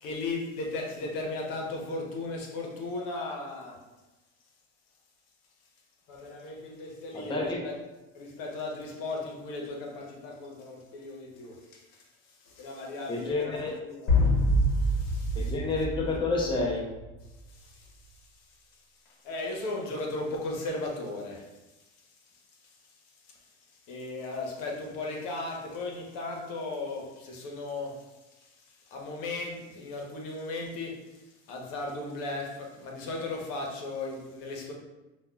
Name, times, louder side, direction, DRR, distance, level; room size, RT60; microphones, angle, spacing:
voice 1, 0.0-3.8 6.1-7.8 8.1-12.1 12.4-14.2 14.7-15.5 17.5-18.0 19.1-21.5 23.2-23.5 23.9-28.0 28.3-31.2 31.5-34.7, left 2 dB, 65° left, 0 dB, 0.9 m, -36 dB
voice 2, 7.1-7.6 13.1-13.7 15.4-16.8, left 3 dB, 15° left, -2 dB, 0.6 m, -29 dB
sound 1, 14.1-16.9, left 1 dB, 50° left, 1.3 m, -25 dB
5.2 x 2.3 x 2.3 m, 1.1 s
supercardioid pair, 95°, 36 cm